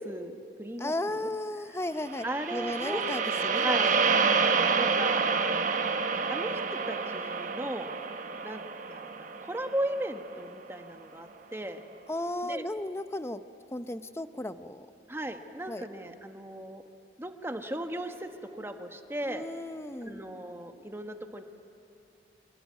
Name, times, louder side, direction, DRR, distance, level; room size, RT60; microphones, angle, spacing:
voice 1, 0.0-1.3 2.2-3.0 3.6-3.9 4.7-5.2 5.7-5.8 6.3-7.9 8.4-8.6 8.9-11.8 12.4-12.7 15.1-16.8 17.2-19.4 20.0-21.4, right 1 dB, 15° right, 5 dB, 1.3 m, -36 dB
voice 2, 0.8-2.3 2.5-4.0 12.1-13.4 13.7-14.9 15.7-15.9 19.2-20.2, left 1 dB, 15° left, 11 dB, 0.7 m, -35 dB
sound 1, 2.1-10.4, right 5 dB, 45° right, 1.1 m, -28 dB
26.0 x 21.0 x 9.4 m, 2.8 s
head